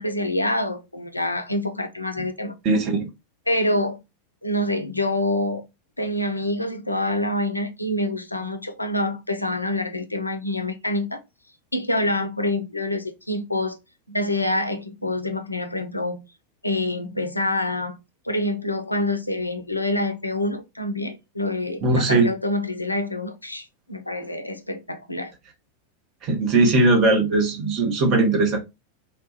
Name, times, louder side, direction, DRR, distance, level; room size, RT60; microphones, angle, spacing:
voice 1, 0.0-2.5 3.5-4.0 4.4-5.6 6.0-11.2 11.7-13.8 14.1-16.2 16.6-18.0 18.2-25.3, left 1 dB, 85° left, 0.3 m, -26 dB
voice 2, 2.6-3.1 21.8-22.3 26.2-28.6, right 2 dB, 35° right, 0.8 m, -19 dB
3.0 x 2.2 x 2.7 m
figure-of-eight pair, 90°, 0 cm